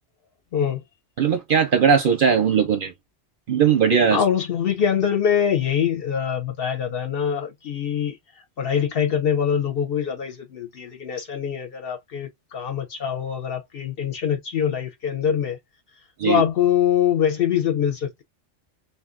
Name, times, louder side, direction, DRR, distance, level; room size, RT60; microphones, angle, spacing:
voice 1, 0.5-0.8 4.1-8.2 8.6-15.6 16.2-18.2, left 8 dB, 55° left, 0.8 m, -23 dB
voice 2, 1.2-2.9 3.5-4.2 16.2-16.4, right 7 dB, 55° right, 0.7 m, -19 dB
2.5 x 2.3 x 3.6 m
omnidirectional pair, 1.3 m